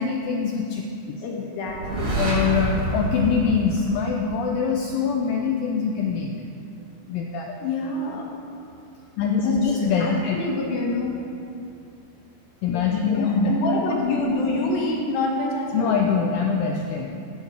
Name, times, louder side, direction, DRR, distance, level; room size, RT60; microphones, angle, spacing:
voice 1, 0.0-1.2 2.1-6.3 7.1-7.5 9.2-10.4 12.6-13.8 15.7-17.1, left 5 dB, 90° left, 1 dB, 2.0 m, -23 dB
voice 2, 1.2-2.2 7.6-8.2 9.4-11.2 13.0-15.9, left 2 dB, 70° left, -1 dB, 3.1 m, -27 dB
sound 1, 1.7-4.5, right 1 dB, 75° right, 3.9 m, -27 dB
16.0 x 6.6 x 4.7 m, 2.6 s
omnidirectional pair, 4.7 m